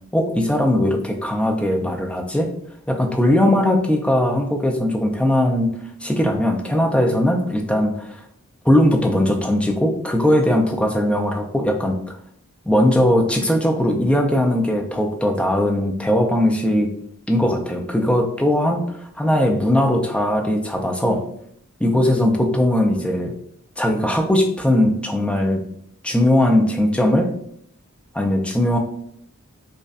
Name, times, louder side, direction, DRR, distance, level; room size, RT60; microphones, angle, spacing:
voice 1, 0.1-2.5 2.9-8.2 8.6-12.0 12.7-16.9 17.3-21.2 21.8-23.3 23.8-25.6 26.0-27.3 28.1-28.8, left 1 dB, 5° left, 2 dB, 0.4 m, -19 dB
5.1 x 2.2 x 2.4 m, 0.68 s
head